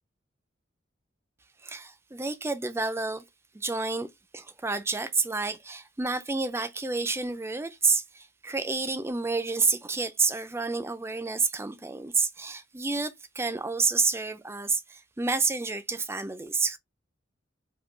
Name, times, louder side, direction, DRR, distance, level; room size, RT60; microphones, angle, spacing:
voice 1, 1.6-3.2 3.5-4.1 4.3-16.8, right 4 dB, 15° right, 0.4 m, -29 dB
3.6 x 2.7 x 3.7 m
head